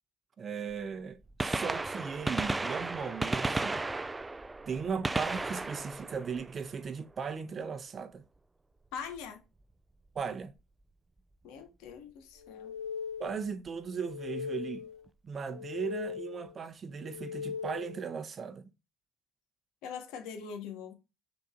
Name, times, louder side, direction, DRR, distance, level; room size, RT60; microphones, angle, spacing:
voice 1, 0.4-3.9 4.7-8.2 10.1-10.5 13.2-14.9 15.2-18.6, right 6 dB, 30° right, 0.8 m, -37 dB
Gunshot gunfire, 0.7-0.8 1.2-7.1 9.1-9.2 10.2-10.3 11.9-12.0 13.4-13.5 13.7-13.8, right 2 dB, 10° right, 0.3 m, -34 dB
voice 2, 8.9-9.4 11.4-12.7 19.8-20.9, left 7 dB, 75° left, 1.8 m, -42 dB
sound 1, 12.4-13.5 13.9-15.0 15.4-16.5 17.0-18.1, left 7 dB, 20° left, 2.6 m, -40 dB
6.6 x 4.1 x 3.8 m
cardioid pair, 145°, 0 cm